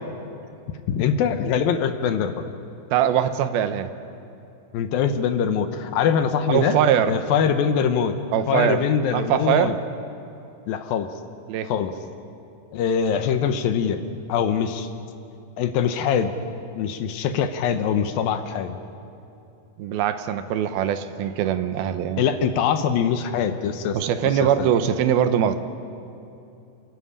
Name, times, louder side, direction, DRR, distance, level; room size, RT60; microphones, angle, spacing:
voice 1, 0.9-2.4 4.7-6.8 7.1-8.2 8.5-9.7 10.7-11.1 11.7-12.0 12.7-14.0 14.3-14.9 15.6-16.3 16.8-18.8 22.2-24.0 24.2-24.7, left 7 dB, 75° left, 8 dB, 2.5 m, -23 dB
voice 2, 2.9-3.9 6.5-7.1 8.3-9.8 11.5-11.7 19.8-22.2 23.9-25.6, right 9 dB, 80° right, 10 dB, 2.7 m, -22 dB
28.5 x 13.0 x 9.9 m, 2.8 s
omnidirectional pair, 4.6 m